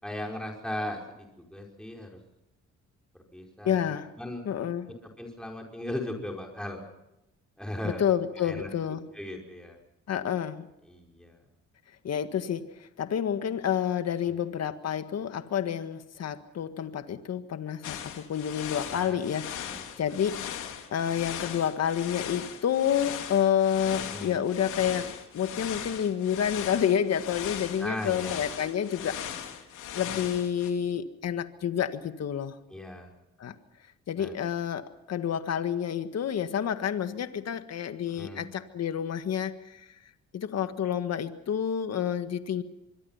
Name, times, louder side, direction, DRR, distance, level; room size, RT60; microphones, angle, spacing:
voice 1, 0.0-1.0 1.5-2.1 3.3-3.8 4.2-4.4 5.2-6.8 7.6-8.0 8.4-8.7 9.1-9.8 10.9-11.4 14.2-14.3 18.9-19.2 19.6-20.1 24.1-24.4 27.8-28.5 32.7-33.1 34.2-34.3 38.1-38.5, left 1 dB, 5° left, 0 dB, 5.3 m, -37 dB
voice 2, 3.6-4.1 4.5-4.9 7.8-9.1 10.1-10.7 12.0-20.6 20.9-29.2 30.0-32.6 33.4-33.6 34.1-39.9 40.3-42.6, left 9 dB, 55° left, 10 dB, 1.7 m, -29 dB
sound 1, 17.8-30.7, left 9 dB, 80° left, 3.3 m, -39 dB
25.0 x 23.5 x 5.8 m, 0.89 s
cardioid pair, 90°, 30 cm